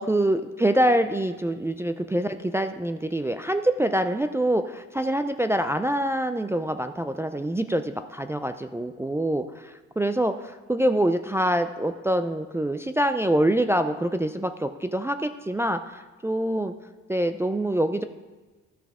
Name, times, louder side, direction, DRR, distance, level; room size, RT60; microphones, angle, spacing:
voice 1, 0.0-16.7 17.1-18.0, right 1 dB, 10° right, 8 dB, 0.3 m, -25 dB
13.5 x 5.8 x 3.6 m, 1.3 s
cardioid pair, 90°, 30 cm